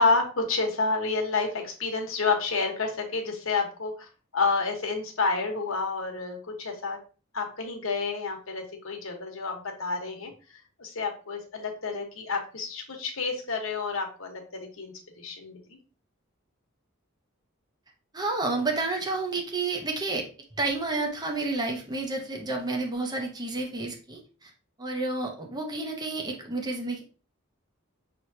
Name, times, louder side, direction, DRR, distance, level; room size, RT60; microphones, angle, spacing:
voice 1, 0.0-7.0 7.3-15.8, left 4 dB, 75° left, 2 dB, 1.2 m, -29 dB
voice 2, 18.1-20.3 20.6-24.5 24.8-27.0, right 3 dB, 20° right, 1 dB, 0.9 m, -30 dB
6.2 x 3.1 x 2.7 m, 0.36 s
head